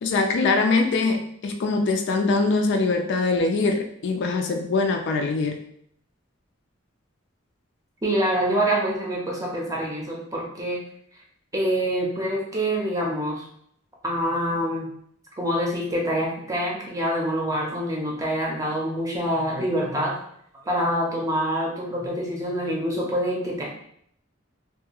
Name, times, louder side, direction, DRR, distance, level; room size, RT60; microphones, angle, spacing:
voice 1, 0.0-5.6, left 3 dB, 60° left, 4 dB, 0.3 m, -23 dB
voice 2, 8.0-10.8 11.5-13.4 14.0-14.9 15.4-20.2 20.7-23.6, equal, 15° right, -2 dB, 0.6 m, -26 dB
2.6 x 2.3 x 2.9 m, 0.69 s
head